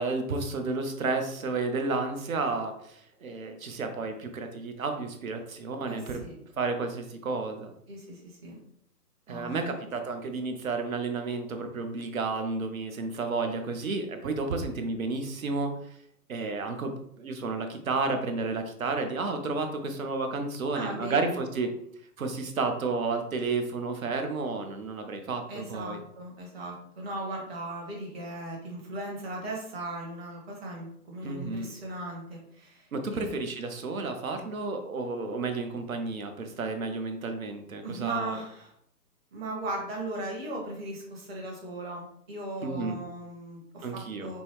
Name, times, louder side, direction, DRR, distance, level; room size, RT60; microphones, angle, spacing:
voice 1, 0.0-6.2 6.6-7.7 9.3-15.7 16.3-21.7 22.2-26.0 31.2-31.7 32.9-38.4 42.6-43.0 43.8-44.3, right 3 dB, 60° right, 6 dB, 0.8 m, -31 dB
voice 2, 5.9-6.3 7.9-8.6 9.3-9.8 20.7-21.4 25.5-33.4 37.8-38.7 39.3-44.4, right 1 dB, 40° right, -2 dB, 1.4 m, -38 dB
5.3 x 2.0 x 3.1 m, 0.69 s
figure-of-eight pair, 135°, 48 cm